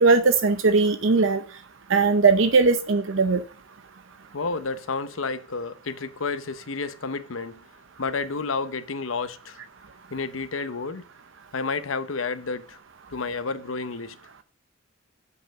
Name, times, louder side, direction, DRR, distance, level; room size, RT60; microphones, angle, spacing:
voice 1, 0.0-1.4 1.9-3.4, right 4 dB, 70° right, 0.7 m, -19 dB
voice 2, 4.3-7.6 8.0-9.6 10.1-11.1 11.5-12.8 13.1-14.2, left 4 dB, 85° left, 0.9 m, -30 dB
7.8 x 5.6 x 7.5 m
head